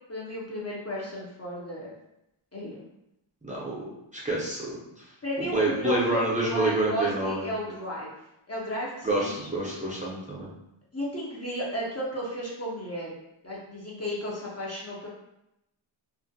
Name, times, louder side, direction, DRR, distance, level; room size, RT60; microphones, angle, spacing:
voice 1, 0.1-1.9 2.5-2.8 5.2-8.1 8.5-9.5 10.9-13.2 13.4-15.1, equal, 30° left, -5 dB, 0.5 m, -34 dB
voice 2, 3.4-3.8 4.1-4.8 5.4-7.5 9.0-10.5, right 2 dB, 15° right, -6 dB, 0.5 m, -27 dB
2.4 x 2.1 x 2.5 m, 0.86 s
wide cardioid pair, 85°, 49 cm